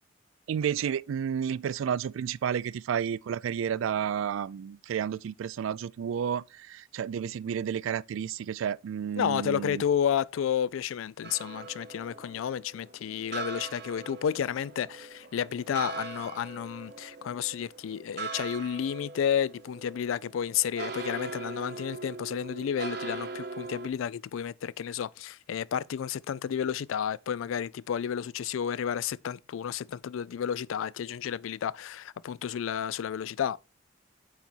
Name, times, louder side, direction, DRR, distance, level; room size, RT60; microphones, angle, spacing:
voice 1, 0.5-9.8, right 8 dB, 80° right, 0.3 m, -31 dB
voice 2, 9.2-33.6, left 8 dB, 80° left, 0.3 m, -31 dB
sound 1, 11.2-23.9, right 4 dB, 55° right, 0.9 m, -41 dB
8.5 x 4.0 x 4.4 m
head